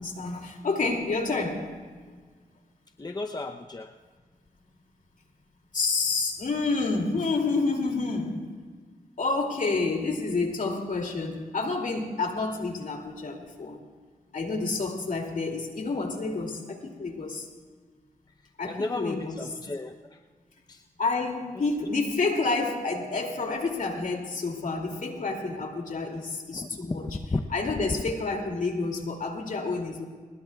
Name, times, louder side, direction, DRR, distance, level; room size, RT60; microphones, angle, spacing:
voice 1, 0.0-1.7 5.7-8.4 9.2-13.8 14.3-17.5 18.6-19.4 21.0-27.0 27.5-30.1, left 3 dB, 60° left, 2 dB, 2.7 m, -29 dB
voice 2, 3.0-3.9 18.6-20.2 20.7-20.8 21.8-21.9 26.5-27.5, left 2 dB, 25° left, 5 dB, 0.7 m, -34 dB
24.0 x 20.5 x 2.4 m, 1.5 s
cardioid pair, 55°, 15 cm